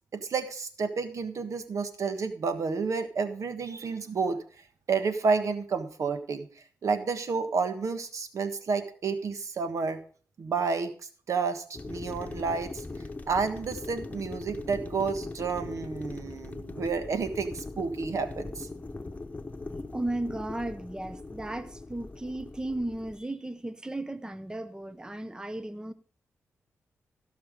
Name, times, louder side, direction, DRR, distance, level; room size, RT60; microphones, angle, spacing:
voice 1, 0.2-4.4 4.9-6.5 6.8-10.0 10.4-10.9 11.3-12.8 13.3-18.7, right 5 dB, 65° right, 1.4 m, -30 dB
sound 1, 11.7-23.2, left 3 dB, 25° left, 1.2 m, -40 dB
voice 2, 19.9-25.9, right 1 dB, 15° right, 0.8 m, -35 dB
16.0 x 5.8 x 5.2 m
cardioid pair, 55°, 6 cm